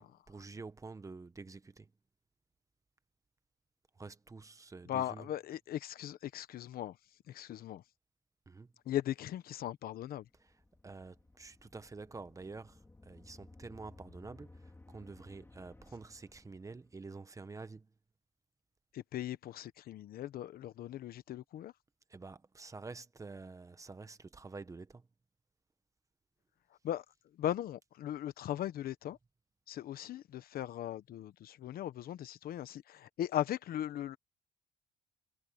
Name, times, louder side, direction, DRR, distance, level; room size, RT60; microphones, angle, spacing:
voice 1, 0.0-1.9 3.9-5.3 8.5-8.7 10.3-17.9 22.1-25.1, right 3 dB, 20° right, 1.2 m, -49 dB
voice 2, 4.9-7.0 7.3-7.8 8.9-10.2 18.9-21.7 26.8-27.0 27.4-29.2 29.7-34.2, left 12 dB, 60° left, 1.1 m, -38 dB
sound 1, 10.2-17.1, left 2 dB, 15° left, 4.0 m, -58 dB
cardioid pair, 110°, 17 cm